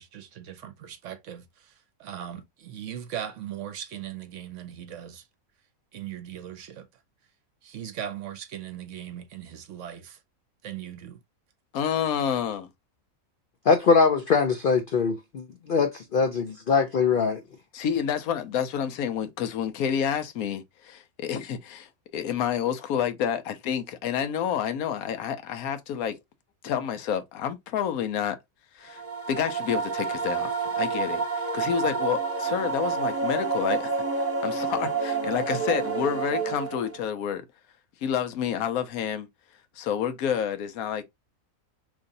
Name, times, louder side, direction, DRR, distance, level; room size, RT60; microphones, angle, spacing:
voice 1, 0.0-1.4 2.0-5.2 5.9-6.9 7.6-10.2 10.6-11.2, right 10 dB, 65° right, 0.9 m, -38 dB
voice 2, 11.7-12.7 17.7-26.2 26.6-28.4 28.8-29.0 29.3-37.4 38.0-39.3 39.8-41.0, left 8 dB, 85° left, 1.1 m, -29 dB
voice 3, 13.7-17.4, left 5 dB, 65° left, 0.5 m, -22 dB
sound 1, 28.9-37.0, right 5 dB, 20° right, 0.4 m, -29 dB
3.1 x 2.6 x 3.8 m
omnidirectional pair, 1.5 m